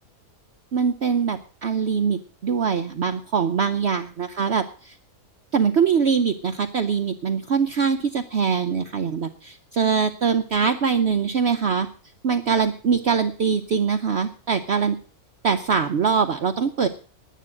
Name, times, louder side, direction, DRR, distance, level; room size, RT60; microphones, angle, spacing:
voice 1, 0.7-5.0 5.5-11.9 12.2-15.0 15.4-16.9, right 6 dB, 55° right, 7 dB, 0.9 m, -23 dB
11.0 x 9.4 x 7.5 m, 0.41 s
omnidirectional pair, 1.6 m